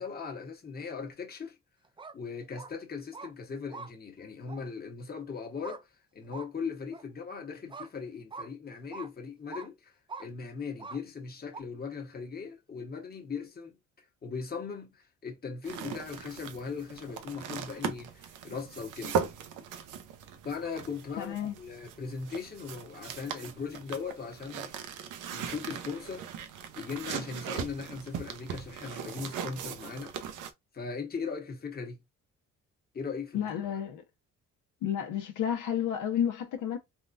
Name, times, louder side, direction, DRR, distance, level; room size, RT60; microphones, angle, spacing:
voice 1, 0.0-1.5 2.1-5.9 6.1-9.9 10.2-13.8 14.2-19.2 20.4-24.7 25.3-26.3 26.8-30.1 30.7-32.0 32.9-33.5, left 5 dB, 30° left, 1.1 m, -39 dB
sound 1, 1.8-2.1 2.5-2.7 3.1-3.3 3.7-3.9 4.5-4.6 5.6-5.8 6.3-6.5 6.9-7.0 7.7-7.9 8.3-8.5 8.9-9.1 9.5-9.7 10.1-10.3 10.8-11.0 11.5-11.6, right 4 dB, 15° right, 0.4 m, -43 dB
sound 2, 15.6-30.5, right 7 dB, 85° right, 0.7 m, -39 dB
voice 2, 21.2-21.5 33.3-34.0 34.8-36.8, left 9 dB, 80° left, 0.9 m, -31 dB
3.6 x 2.4 x 2.5 m
cardioid pair, 90°, 30 cm